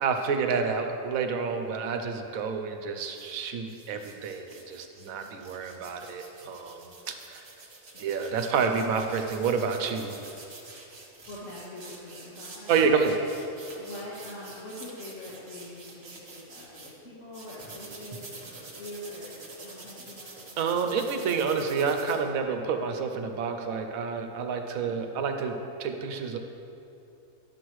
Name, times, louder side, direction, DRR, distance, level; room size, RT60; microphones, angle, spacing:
voice 1, 0.0-7.4 8.0-10.2 12.7-13.2 20.6-26.4, right 5 dB, 80° right, 6 dB, 1.1 m, -29 dB
sound 1, 3.1-3.3 3.7-16.9 17.3-22.2, right 3 dB, 50° right, 1.3 m, -47 dB
voice 2, 11.3-12.7 13.7-16.0 16.3-20.4, left 1 dB, 65° left, -9 dB, 1.7 m, -43 dB
11.5 x 7.0 x 3.1 m, 2.8 s
omnidirectional pair, 1.4 m